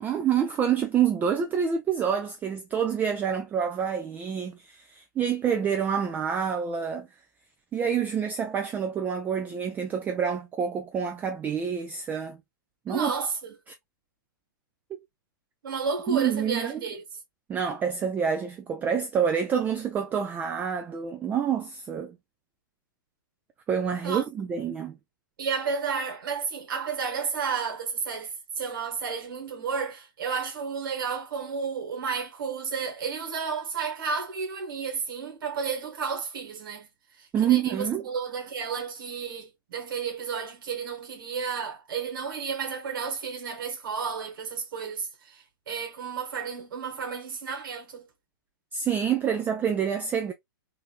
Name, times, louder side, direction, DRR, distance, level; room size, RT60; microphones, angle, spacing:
voice 1, 0.0-7.1 7.7-12.4 12.9-13.1 16.1-16.8 17.5-22.2 23.7-25.0 37.3-38.1 48.7-50.3, right 8 dB, 15° right, 0.3 m, -27 dB
voice 2, 12.9-13.5 15.6-17.0 24.0-24.2 25.4-36.9 37.2-48.1, right 5 dB, 75° right, 1.3 m, -32 dB
3.8 x 2.6 x 2.4 m
hypercardioid pair, 140°, 11 cm